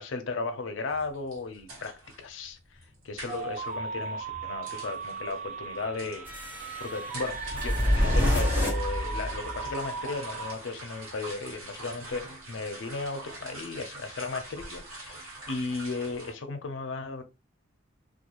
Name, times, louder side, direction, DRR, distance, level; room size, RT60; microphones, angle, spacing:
voice 1, 0.0-2.6 3.0-6.3 6.8-17.2, left 3 dB, 65° left, 0.5 m, -35 dB
sound 1, 0.9-16.3, right 2 dB, 75° right, 1.2 m, -45 dB
sound 2, 3.3-10.5, right 5 dB, 40° right, 0.4 m, -37 dB
sound 3, 6.3-9.7, left 1 dB, 10° right, 1.0 m, -28 dB
2.3 x 2.3 x 2.9 m
head